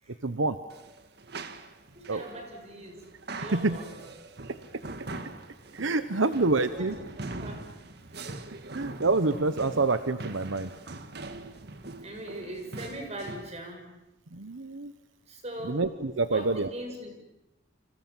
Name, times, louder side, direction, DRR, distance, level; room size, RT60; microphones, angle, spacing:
voice 1, 0.2-0.6 2.1-2.2 3.3-3.8 5.7-7.0 8.7-10.7 14.3-14.9 15.6-16.7, right 3 dB, 80° right, 11 dB, 1.1 m, -27 dB
sound 1, 0.7-13.5, right 2 dB, 55° right, 1.9 m, -42 dB
voice 2, 1.9-3.0 3.3-4.0 6.2-7.6 12.0-13.8 15.3-15.8 16.3-17.1, right 1 dB, 35° right, 3 dB, 6.9 m, -41 dB
30.0 x 26.0 x 7.4 m, 0.91 s
head